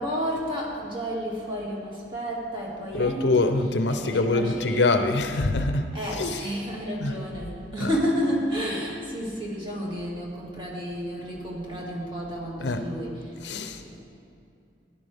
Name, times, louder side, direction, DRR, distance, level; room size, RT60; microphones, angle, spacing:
voice 1, 0.0-3.6 3.9-5.0 5.9-13.4 13.8-14.0, equal, 30° right, -4 dB, 2.3 m, -31 dB
voice 2, 2.9-6.4 7.0-7.1 7.8-7.9 12.6-12.8 13.4-13.8, left 2 dB, 70° left, 8 dB, 0.7 m, -24 dB
14.5 x 10.5 x 3.5 m, 2.5 s
head